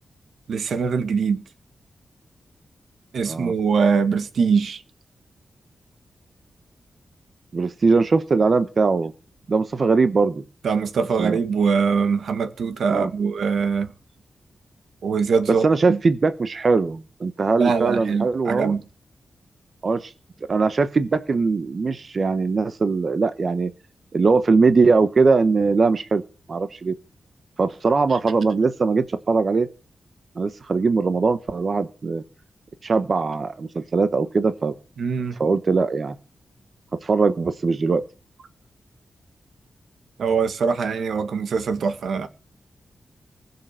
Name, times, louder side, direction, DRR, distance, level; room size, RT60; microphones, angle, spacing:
voice 1, 0.5-1.4 3.1-4.8 10.6-13.9 15.0-16.0 17.6-18.8 35.0-35.4 40.2-42.3, right 5 dB, 80° right, 1.9 m, -22 dB
voice 2, 7.5-9.1 9.5-10.4 11.2-11.4 12.9-13.1 15.5-18.7 19.8-20.1 20.5-23.7 24.1-26.2 26.5-26.9 27.6-29.7 30.4-32.2 32.8-34.7 35.4-36.1 37.0-38.0, right 4 dB, 40° right, 0.9 m, -21 dB
20.0 x 6.8 x 7.5 m
wide cardioid pair, 150°, 0 cm